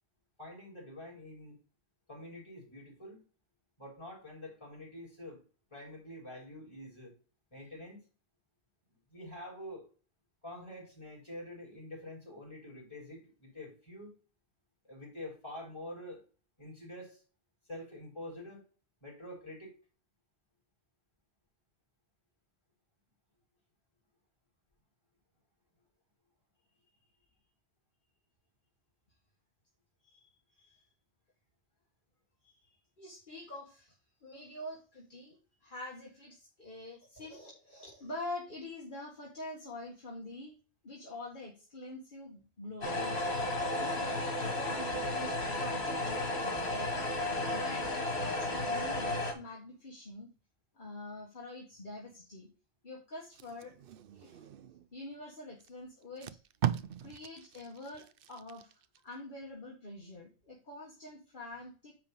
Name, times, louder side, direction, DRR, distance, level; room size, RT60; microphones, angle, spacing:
voice 1, 0.4-1.6 2.1-3.2 3.8-5.4 5.7-7.1 7.5-8.1 9.1-9.9 10.4-14.2 14.8-16.2 16.6-17.2 17.7-18.6 19.0-19.7, left 1 dB, 25° left, -3 dB, 3.7 m, -46 dB
voice 2, 30.0-30.8 32.4-32.5 33.0-33.9 34.2-40.5 40.8-47.1 47.5-50.3 50.7-52.5 52.8-53.7 54.1-54.4 54.9-56.4 57.0-58.7 59.0-61.9, left 1 dB, 55° left, -3 dB, 1.7 m, -46 dB
sound 1, 42.8-49.3, left 2 dB, 85° left, 2.0 m, -33 dB
Packing tape duct tape, 53.2-54.9 55.6-55.7 56.0-59.0 59.4-59.6, right 10 dB, 65° right, 0.7 m, -39 dB
9.5 x 3.5 x 5.3 m, 0.36 s
omnidirectional pair, 1.0 m